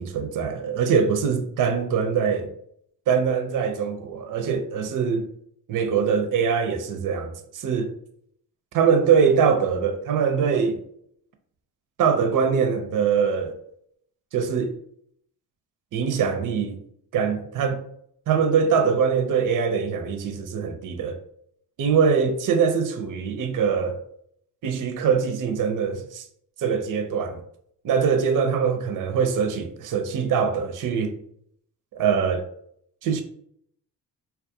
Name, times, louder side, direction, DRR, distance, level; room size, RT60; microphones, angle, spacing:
voice 1, 0.0-2.5 3.1-5.3 5.7-7.9 8.7-10.8 12.0-13.6 14.3-14.7 15.9-16.8 17.1-17.8 18.3-21.2 21.8-24.0 24.6-26.3 26.6-27.4 27.8-31.1 31.9-32.4 33.0-33.2, right 6 dB, 45° right, 0.5 m, -23 dB
2.3 x 2.2 x 2.6 m
supercardioid pair, 55°, 45 cm